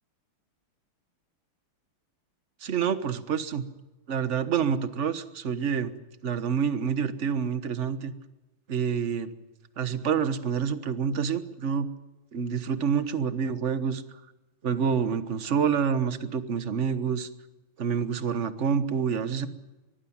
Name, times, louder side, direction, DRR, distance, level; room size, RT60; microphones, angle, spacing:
voice 1, 2.6-3.6 4.1-5.9 6.2-8.1 8.7-9.3 9.8-11.9 12.3-14.0 14.6-17.3 17.8-19.5, right 7 dB, 40° right, 11 dB, 1.3 m, -27 dB
24.0 x 19.5 x 7.2 m, 1.1 s
omnidirectional pair, 2.4 m